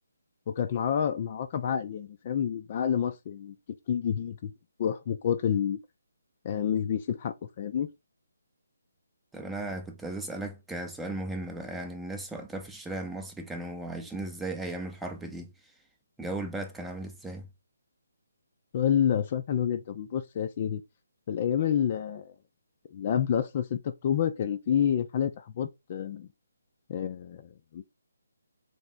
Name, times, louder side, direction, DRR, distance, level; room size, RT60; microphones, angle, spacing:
voice 1, 0.5-3.5 3.9-4.5 4.8-5.8 6.4-7.9 18.7-20.8 21.3-22.3 22.9-26.3 26.9-27.8, left 8 dB, 35° left, 0.4 m, -28 dB
voice 2, 9.3-15.5 16.2-17.5, right 2 dB, 5° right, 0.6 m, -36 dB
3.5 x 3.3 x 4.1 m
figure-of-eight pair, 150°, 0 cm